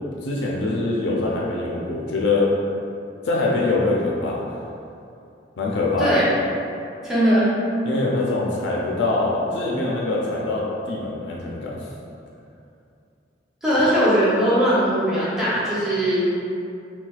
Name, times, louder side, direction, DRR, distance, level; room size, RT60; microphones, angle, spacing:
voice 1, 0.2-2.5 3.2-4.4 5.6-6.2 7.8-11.9, left 2 dB, 75° left, -4 dB, 0.4 m, -23 dB
voice 2, 7.0-7.5 13.6-16.3, equal, 5° right, -12 dB, 0.7 m, -19 dB
4.0 x 2.2 x 2.3 m, 2.6 s
head